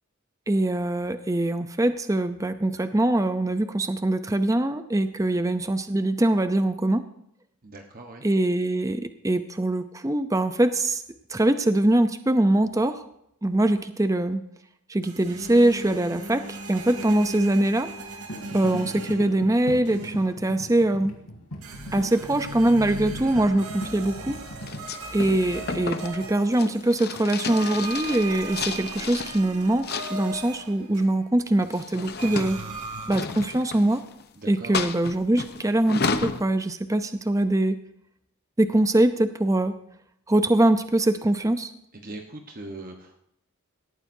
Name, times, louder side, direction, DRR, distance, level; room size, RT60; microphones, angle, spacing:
voice 1, 0.5-7.0 8.2-11.0 11.3-13.0 13.4-14.4 14.9-17.9 18.5-21.1 21.9-24.4 25.1-32.6 33.1-34.0 34.5-37.8 38.6-39.8 40.3-41.7, right 1 dB, 15° right, 9 dB, 0.6 m, -23 dB
voice 2, 7.6-8.2 34.4-34.9 41.9-43.2, right 2 dB, 40° right, 3 dB, 1.1 m, -40 dB
sound 1, 15.0-19.5 19.9-20.4 21.6-27.0 27.4-31.4 32.0-33.1, right 2 dB, 80° right, 3.0 m, -38 dB
sound 2, 18.3-24.8, equal, 85° left, 2.9 m, -39 dB
sound 3, 24.6-29.4 29.8-30.5 31.5-34.2 34.7-36.4, left 4 dB, 45° left, 0.8 m, -32 dB
18.5 x 14.0 x 2.7 m, 0.76 s
head